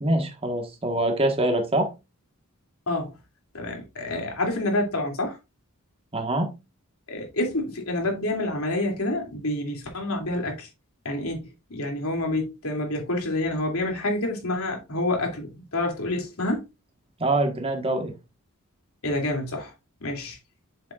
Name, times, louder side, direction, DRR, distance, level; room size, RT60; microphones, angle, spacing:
voice 1, 0.0-1.9 6.1-6.5 17.2-18.1, right 1 dB, 25° right, 1.4 m, -24 dB
voice 2, 2.9-3.2 3.5-5.4 7.1-10.7 11.0-16.6 19.0-19.7 20.0-20.4, left 1 dB, 80° left, 2.7 m, -28 dB
7.3 x 7.0 x 2.4 m
head